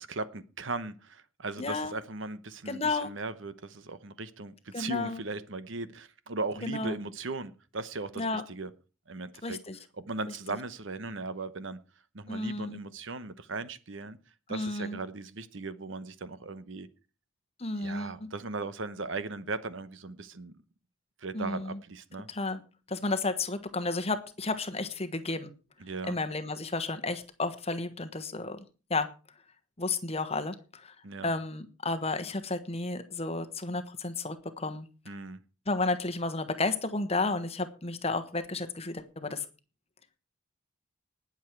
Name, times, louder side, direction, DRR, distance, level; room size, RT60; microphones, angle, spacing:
voice 1, 0.0-8.7 9.1-9.6 10.0-11.8 12.1-14.2 14.5-16.9 17.8-20.5 21.2-22.3 25.8-26.2 31.0-31.3 35.1-35.4, right 3 dB, 70° right, 1.0 m, -38 dB
voice 2, 1.6-1.9 2.7-3.1 4.7-5.2 6.6-7.0 8.2-8.4 9.4-9.8 12.3-12.8 14.5-15.0 17.6-18.3 21.3-21.8 22.3-22.6 22.9-25.5 26.0-28.6 28.9-29.1 29.8-30.9 31.2-34.9 35.7-39.4, left 3 dB, 30° left, 1.3 m, -32 dB
19.0 x 7.3 x 4.6 m
head